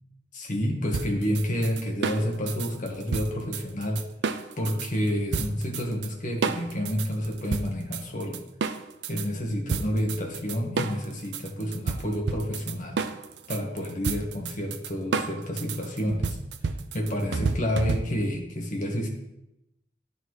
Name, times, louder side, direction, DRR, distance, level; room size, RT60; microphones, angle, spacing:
voice 1, 0.3-4.0 4.6-8.4 9.1-13.0 13.5-16.4 16.9-19.1, equal, 45° left, 1 dB, 1.2 m, -29 dB
sound 1, 0.9-4.9 5.3-6.1 6.4-9.3 9.7-18.4, right 4 dB, 75° right, 0.4 m, -31 dB
11.0 x 4.0 x 3.1 m, 0.88 s
head